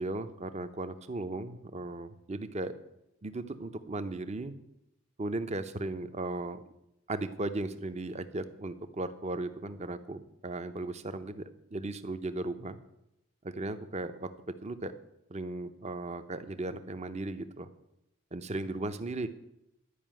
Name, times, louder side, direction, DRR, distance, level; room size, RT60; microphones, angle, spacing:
voice 1, 0.0-2.7 3.2-4.5 5.2-6.6 7.1-11.4 11.7-12.8 13.4-15.0 15.3-17.7 18.3-19.3, right 2 dB, 30° right, 11 dB, 0.7 m, -36 dB
11.0 x 5.5 x 8.8 m, 0.86 s
head